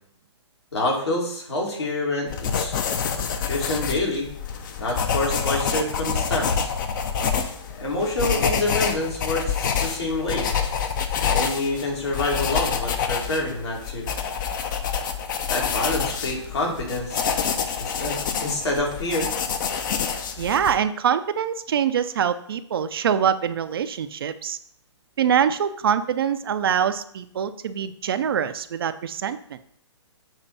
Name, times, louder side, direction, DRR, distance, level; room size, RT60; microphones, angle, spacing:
voice 1, 0.7-2.8 3.4-4.3 4.8-6.7 7.8-10.5 11.2-14.1 15.5-17.2 17.8-19.3, left 2 dB, 65° left, -2 dB, 2.4 m, -27 dB
sound 1, 2.3-20.8, left 6 dB, 45° left, 0.7 m, -27 dB
voice 2, 20.4-24.6 25.2-29.6, right 8 dB, 55° right, 11 dB, 0.5 m, -24 dB
7.2 x 3.2 x 5.5 m, 0.66 s
figure-of-eight pair, 120°, 15 cm